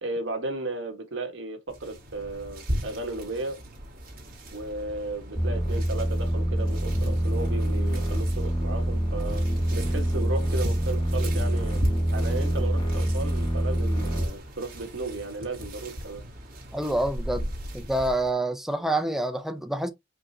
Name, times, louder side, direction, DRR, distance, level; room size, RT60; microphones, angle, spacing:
voice 1, 0.0-3.6 4.5-9.4 9.7-11.8 12.1-16.2, right 2 dB, 80° right, 1.5 m, -34 dB
sound 1, 1.7-18.3, equal, 50° right, 2.0 m, -38 dB
sound 2, 5.3-14.3, right 1 dB, 25° left, 1.8 m, -26 dB
voice 2, 16.7-17.5 17.7-19.9, right 1 dB, ahead, 0.6 m, -27 dB
5.1 x 3.3 x 2.8 m
head